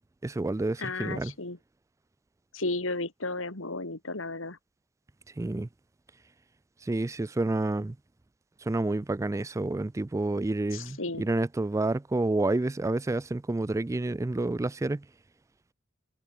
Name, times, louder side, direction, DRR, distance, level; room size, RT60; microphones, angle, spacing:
voice 1, 0.2-1.3 5.4-5.7 6.8-8.0 8.6-15.0, right 2 dB, 15° right, 0.3 m, -29 dB
voice 2, 0.8-1.6 2.5-4.6 10.7-11.3, left 2 dB, 80° left, 3.0 m, -33 dB
head